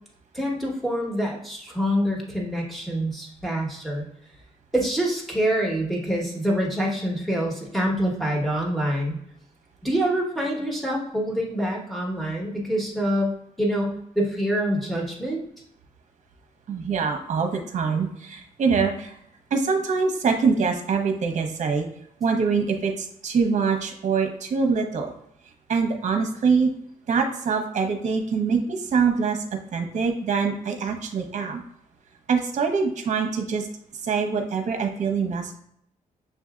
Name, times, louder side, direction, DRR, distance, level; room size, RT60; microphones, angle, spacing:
voice 1, 0.3-4.0 4.7-9.2 9.8-13.3 13.6-15.4, equal, ahead, -1 dB, 1.2 m, -26 dB
voice 2, 16.7-19.1 19.5-21.9 22.2-25.1 25.7-26.7 27.1-29.4 29.7-31.6 32.3-33.7 34.0-35.5, right 5 dB, 60° right, 4 dB, 0.8 m, -24 dB
6.8 x 2.7 x 2.4 m, 0.70 s
cardioid pair, 100°, 14 cm